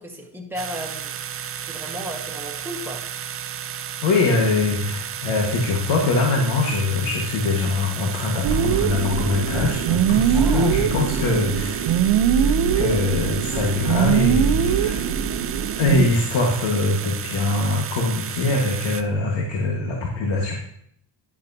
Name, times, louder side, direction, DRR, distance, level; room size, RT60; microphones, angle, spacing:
voice 1, 0.0-3.0 10.3-10.9 11.3-11.6, equal, 5° right, 0 dB, 1.5 m, -35 dB
sound 1, 0.6-19.0, right 9 dB, 30° right, 0.4 m, -33 dB
voice 2, 4.0-11.9 12.4-15.1 15.8-20.5, left 3 dB, 80° left, 0 dB, 1.7 m, -23 dB
sound 2, 8.4-16.0, right 8 dB, 65° right, 0.8 m, -21 dB
sound 3, 10.2-16.6, left 3 dB, 65° left, 3.6 m, -44 dB
10.5 x 10.5 x 2.8 m, 0.70 s
cardioid pair, 140°, 45 cm